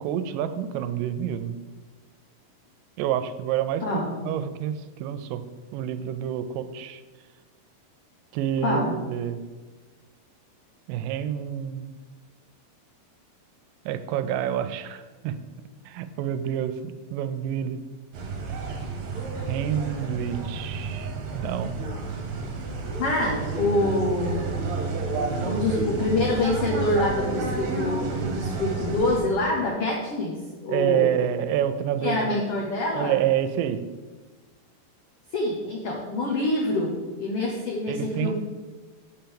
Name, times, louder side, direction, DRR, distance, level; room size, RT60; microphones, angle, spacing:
voice 1, 0.0-1.6 3.0-5.4 5.7-7.0 8.3-9.4 10.9-11.9 13.9-15.4 15.9-17.8 19.5-21.9 25.3-25.8 30.7-32.3 32.9-33.8 37.9-38.3, right 10 dB, 85° right, 11 dB, 2.2 m, -28 dB
voice 2, 3.8-4.2 8.6-9.0 23.0-24.5 25.4-30.4 30.6-31.1 32.0-33.2 35.3-38.3, left 2 dB, 80° left, -1 dB, 1.3 m, -26 dB
sound 1, 18.1-29.2, right 4 dB, 65° right, 2.1 m, -30 dB
5.9 x 5.7 x 6.9 m, 1.3 s
omnidirectional pair, 3.9 m